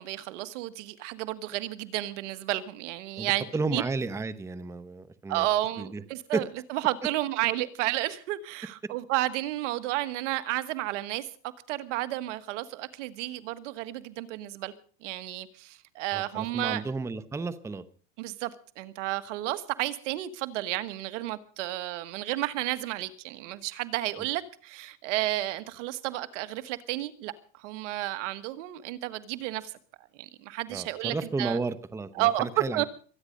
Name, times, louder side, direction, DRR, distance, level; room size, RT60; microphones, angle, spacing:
voice 1, 0.0-3.5 3.7-3.8 5.3-11.3 11.7-14.7 15.0-16.8 18.2-18.5 18.8-29.7 30.2-31.6 32.1-32.9, right 16 dB, 70° right, 1.6 m, -31 dB
voice 2, 3.2-5.5 5.8-6.0 6.3-6.4 16.1-17.8 30.7-32.8, right 3 dB, 5° right, 0.8 m, -32 dB
23.5 x 9.8 x 5.3 m
supercardioid pair, 135°, 38 cm